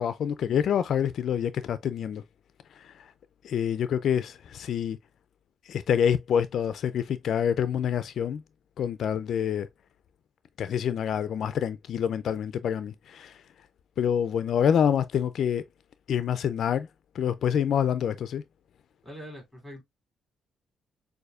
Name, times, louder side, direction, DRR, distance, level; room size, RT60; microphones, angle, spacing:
voice 1, 0.0-2.2 3.4-5.0 5.7-8.4 8.8-9.7 10.6-13.3 14.0-15.6 16.1-16.9 17.2-18.4, left 8 dB, 65° left, 0.3 m, -26 dB
voice 2, 19.0-19.8, equal, 5° right, 2.9 m, -43 dB
6.6 x 2.6 x 2.3 m
cardioid pair, 90°, 0 cm